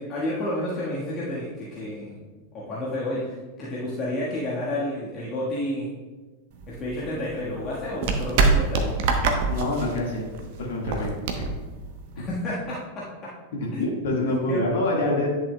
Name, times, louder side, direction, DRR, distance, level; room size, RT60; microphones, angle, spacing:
voice 1, 0.0-2.1 2.5-5.9 6.7-8.9 12.3-13.1 13.7-13.8 14.4-15.3, left 1 dB, 30° left, -7 dB, 1.4 m, -30 dB
sound 1, 6.5-12.5, right 4 dB, 50° right, 0.8 m, -26 dB
voice 2, 9.4-10.2 10.6-11.1 11.3-11.4 12.2-12.3 13.6-15.3, left 2 dB, 60° left, -2 dB, 1.6 m, -26 dB
10.5 x 6.2 x 2.2 m, 1.3 s
figure-of-eight pair, 90°, 0 cm